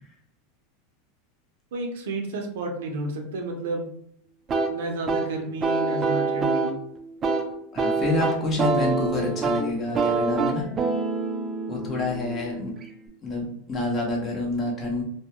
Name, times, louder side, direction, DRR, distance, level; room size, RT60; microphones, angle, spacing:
voice 1, 1.7-3.8 4.7-6.8, right 2 dB, 85° right, 2 dB, 0.6 m, -31 dB
sound 1, 4.5-13.1, right 4 dB, 25° right, 0.4 m, -26 dB
voice 2, 7.7-10.6 11.7-12.7 13.2-15.0, left 2 dB, 30° left, -1 dB, 0.8 m, -27 dB
2.3 x 2.1 x 2.8 m, 0.68 s
supercardioid pair, 135°, 0 cm